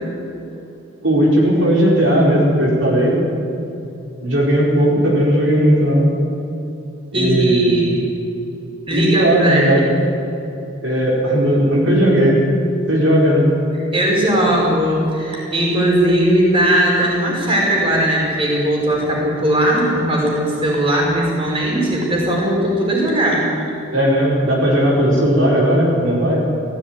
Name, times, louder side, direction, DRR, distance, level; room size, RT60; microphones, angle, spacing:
voice 1, 1.0-3.2 4.2-6.1 7.1-7.9 8.9-10.0 10.8-12.4 12.9-13.5 23.9-26.5, equal, 65° right, -3 dB, 4.8 m, -16 dB
voice 2, 7.1-7.9 8.9-9.6 13.9-23.5, right 1 dB, 25° right, -3 dB, 5.2 m, -18 dB
17.5 x 16.0 x 9.6 m, 2.8 s
head